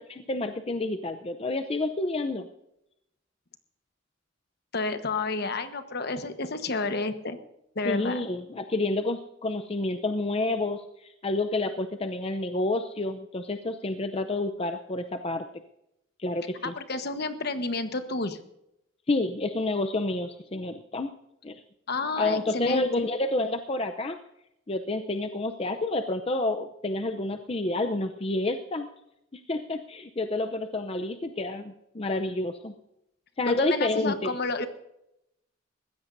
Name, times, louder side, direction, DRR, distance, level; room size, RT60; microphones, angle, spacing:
voice 1, 0.1-2.5 7.8-15.5 16.2-16.7 19.1-21.1 21.4-21.6 22.2-24.2 24.7-28.9 29.3-32.7 33.4-34.3, left 2 dB, 30° left, 7 dB, 0.6 m, -29 dB
voice 2, 4.7-7.4 7.7-8.2 16.6-18.4 21.9-22.9 33.5-34.7, left 3 dB, 55° left, 9 dB, 1.2 m, -30 dB
21.0 x 15.5 x 2.7 m, 0.83 s
head